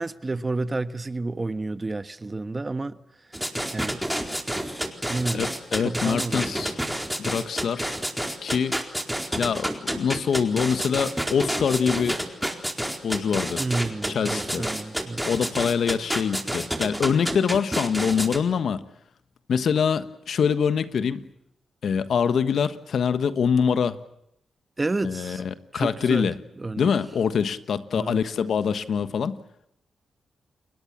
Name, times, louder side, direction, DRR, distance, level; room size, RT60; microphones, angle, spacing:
voice 1, 0.0-3.0 3.7-4.0 5.1-5.5 5.8-6.7 13.6-15.3 24.8-25.4 25.7-26.9 27.9-28.2, right 2 dB, 30° right, 1.3 m, -30 dB
sound 1, 3.3-18.4, right 1 dB, 5° right, 4.3 m, -29 dB
voice 2, 5.3-6.8 7.2-8.0 8.4-8.8 9.3-12.2 13.0-13.6 14.1-14.6 15.3-18.8 19.5-21.2 21.8-24.0 25.0-26.4 26.8-29.4, left 6 dB, 75° left, 1.4 m, -24 dB
30.0 x 21.5 x 7.4 m
cardioid pair, 55°, 0 cm